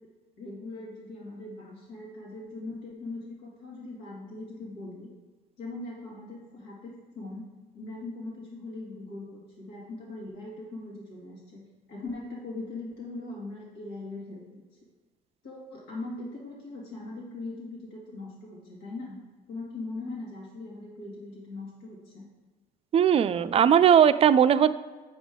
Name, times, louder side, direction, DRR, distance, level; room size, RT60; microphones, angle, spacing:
voice 1, 0.4-5.1 5.6-7.5 7.7-11.6 11.9-14.6 15.4-19.2 19.5-22.2, left 2 dB, 90° left, -4 dB, 2.2 m, -40 dB
voice 2, 22.9-24.7, right 8 dB, 35° right, 13 dB, 0.4 m, -19 dB
8.8 x 5.3 x 3.7 m, 1.3 s
cardioid pair, 110°, 17 cm